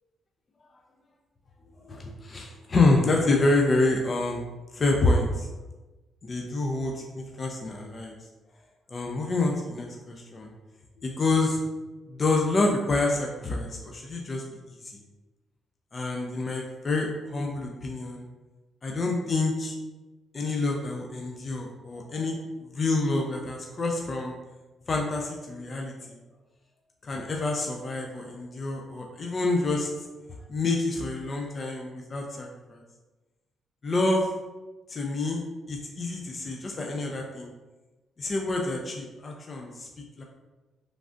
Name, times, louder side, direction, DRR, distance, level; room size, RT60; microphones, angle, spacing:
voice 1, 1.8-4.5 4.7-5.5 6.2-8.1 8.9-10.5 11.0-11.6 12.1-14.4 14.8-15.0 15.9-18.2 18.8-19.8 20.3-24.3 24.9-26.2 27.0-30.1 30.5-32.8 33.8-34.3 34.9-37.5 38.2-39.9 40.2-40.3, left 2 dB, 35° left, 0 dB, 0.4 m, -27 dB
3.2 x 2.5 x 2.4 m, 1.2 s
cardioid pair, 90°, 0 cm